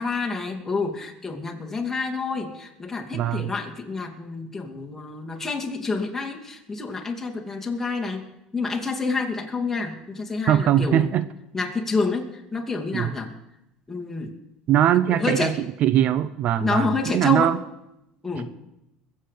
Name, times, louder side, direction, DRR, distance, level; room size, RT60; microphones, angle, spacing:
voice 1, 0.0-8.3 8.5-11.1 11.5-13.3 13.9-14.3 15.1-15.6 16.6-17.5 18.2-18.5, left 4 dB, 10° left, 0 dB, 2.6 m, -28 dB
voice 2, 3.1-3.5 10.5-11.3 12.9-13.1 14.7-15.5 15.8-17.6, right 11 dB, 55° right, 15 dB, 0.6 m, -21 dB
22.0 x 8.5 x 5.1 m, 0.87 s
supercardioid pair, 95°, 3 cm